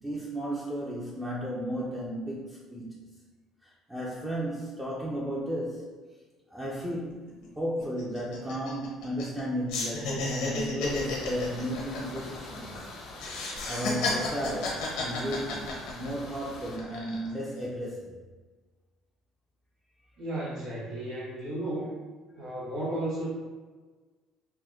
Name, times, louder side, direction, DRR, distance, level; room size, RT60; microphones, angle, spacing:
voice 1, 0.0-3.0 3.6-5.9 6.5-12.9 13.7-18.2, equal, 10° right, -5 dB, 0.4 m, -34 dB
sound 1, 6.9-7.0 7.3-7.5 7.8-9.4 9.7-12.8 13.2-16.3 16.7-17.3, left 3 dB, 85° left, 0.9 m, -33 dB
sound 2, 10.8-16.8, left 2 dB, 65° left, 0.6 m, -44 dB
voice 2, 20.2-21.9 22.4-23.3, right 1 dB, 55° right, -11 dB, 1.5 m, -34 dB
4.2 x 2.1 x 2.5 m, 1.4 s
cardioid pair, 145°, 0 cm